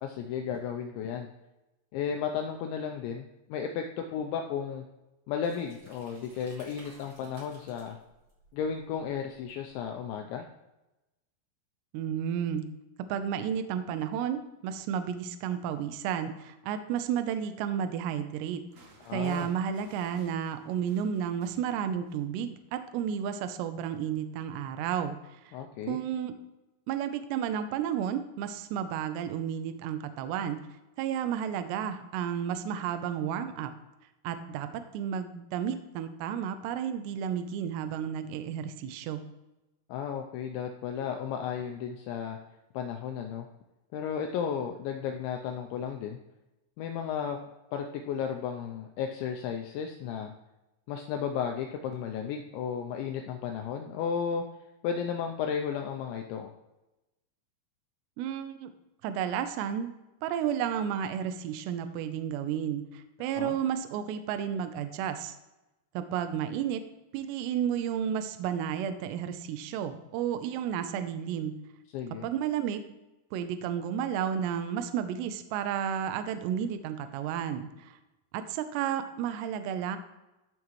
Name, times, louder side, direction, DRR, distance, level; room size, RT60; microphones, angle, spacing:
voice 1, 0.0-1.3 1.9-4.8 5.3-8.0 8.5-10.5 19.1-19.5 25.5-26.0 39.9-42.4 42.7-43.5 43.9-46.2 46.8-47.4 47.7-50.3 50.9-54.5 54.8-56.5 63.2-63.6 71.9-72.3, left 7 dB, 85° left, 3 dB, 2.6 m, -34 dB
sound 1, 5.4-10.1, right 1 dB, 50° right, 1.4 m, -57 dB
voice 2, 11.9-12.7 13.0-18.6 19.1-25.2 25.5-25.6 25.9-26.3 26.9-30.6 31.0-33.7 34.2-39.2 58.2-58.7 59.0-59.9 60.2-65.4 65.9-66.8 67.1-71.6 72.2-72.8 73.3-78.0 78.3-80.0, right 8 dB, 90° right, 9 dB, 2.4 m, -32 dB
sound 2, 18.3-22.4 23.1-23.3, right 3 dB, 65° right, 1.8 m, -57 dB
13.5 x 5.9 x 3.1 m, 0.99 s
omnidirectional pair, 5.8 m